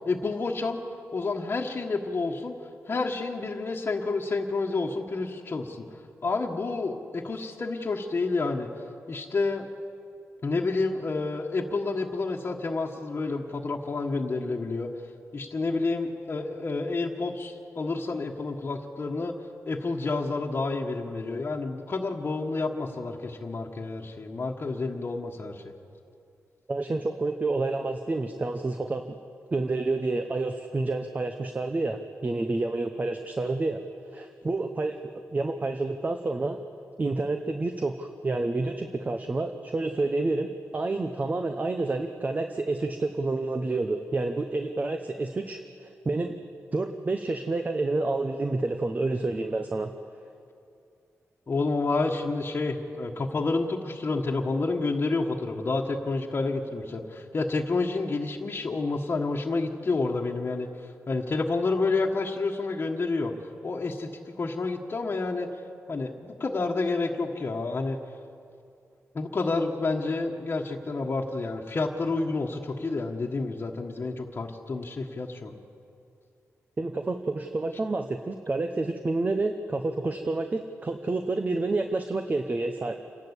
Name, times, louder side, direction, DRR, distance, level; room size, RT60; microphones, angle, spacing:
voice 1, 0.1-0.8 1.1-2.5 2.9-5.9 6.2-8.7 9.1-9.7 10.4-14.9 15.3-19.3 19.7-25.7 51.5-60.7 61.1-63.3 63.6-65.5 65.9-68.0 69.1-75.5, left 3 dB, 45° left, -1 dB, 1.5 m, -29 dB
voice 2, 26.7-29.0 29.5-33.8 34.1-36.6 37.0-46.3 46.7-49.9 76.8-83.0, right 2 dB, 30° right, 6 dB, 1.0 m, -29 dB
28.0 x 11.5 x 8.3 m, 2.5 s
cardioid pair, 85°, 5 cm